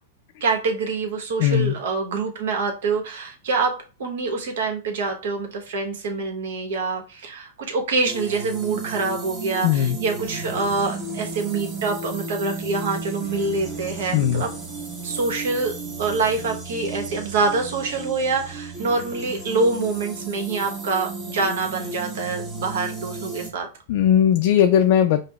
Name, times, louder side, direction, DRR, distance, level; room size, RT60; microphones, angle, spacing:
voice 1, 0.4-3.7 4.0-14.5 15.0-23.7, right 4 dB, 75° right, 3 dB, 0.9 m, -25 dB
voice 2, 1.4-1.7 9.6-10.0 14.1-14.4 23.9-25.2, left 10 dB, 60° left, 6 dB, 0.3 m, -18 dB
sound 1, 8.0-23.5, right 3 dB, 20° right, 0.9 m, -34 dB
5.0 x 2.0 x 2.2 m, 0.34 s
hypercardioid pair, 125°, 0 cm